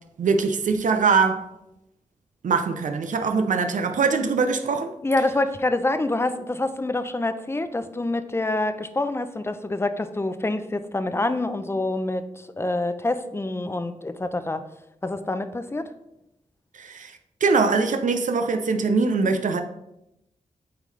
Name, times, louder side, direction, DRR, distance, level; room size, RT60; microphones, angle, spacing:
voice 1, 0.2-1.4 2.4-4.9 16.7-19.6, right 4 dB, 70° right, 0.5 m, -22 dB
voice 2, 5.0-14.6 15.0-15.8, left 2 dB, 20° left, 0.5 m, -26 dB
8.5 x 3.7 x 3.2 m
cardioid pair, 65°, 14 cm